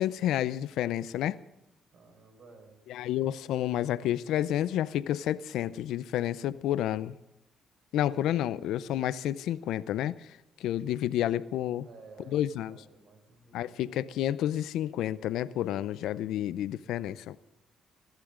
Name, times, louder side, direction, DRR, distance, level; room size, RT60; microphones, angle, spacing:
voice 1, 0.0-1.4 2.9-7.2 7.9-10.2 10.6-11.9 12.3-12.7 13.5-17.4, left 12 dB, 85° left, 0.6 m, -30 dB
voice 2, 1.9-2.8 11.8-12.4 12.7-13.9, right 4 dB, 60° right, 5.0 m, -53 dB
20.5 x 12.0 x 3.8 m
cardioid pair, 90°, 0 cm